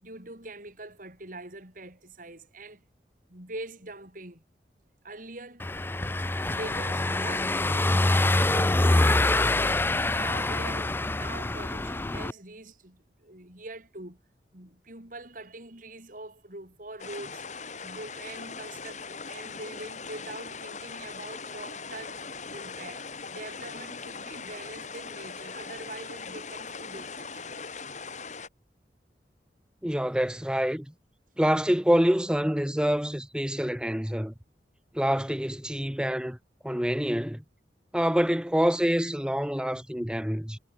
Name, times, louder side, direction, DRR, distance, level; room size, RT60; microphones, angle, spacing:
voice 1, 0.0-2.9 3.3-4.4 5.0-5.7 6.4-14.2 14.5-17.4 17.8-27.7, right 2 dB, 50° right, 5.2 m, -43 dB
Car passing by / Engine, 5.6-12.3, left 2 dB, 10° left, 0.5 m, -25 dB
sound 1, 17.0-28.5, left 5 dB, 40° left, 4.4 m, -40 dB
voice 2, 29.8-30.9 31.4-34.3 34.9-36.4 36.6-37.4 37.9-40.6, equal, 5° right, 1.2 m, -26 dB
head